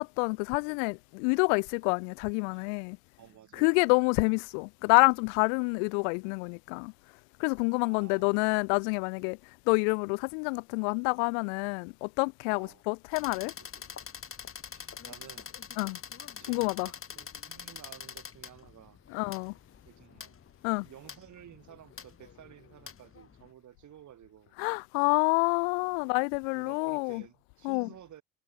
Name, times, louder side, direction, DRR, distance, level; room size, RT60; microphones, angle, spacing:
voice 1, 0.0-3.0 3.6-6.9 7.4-9.4 9.7-13.5 15.8-16.0 16.5-16.9 19.1-19.5 20.6-20.9 24.6-27.2 27.6-27.9, left 40 dB or more, 90° left, 0.5 m, -28 dB
voice 2, 3.2-3.9 7.9-8.4 12.5-12.8 13.7-13.9 14.7-15.5 16.4-19.0 19.9-20.3 20.8-24.6 26.0-28.2, right 11 dB, 60° right, 6.6 m, -53 dB
sound 1, 13.1-23.5, left 7 dB, 40° left, 4.7 m, -46 dB
supercardioid pair, 75°, 33 cm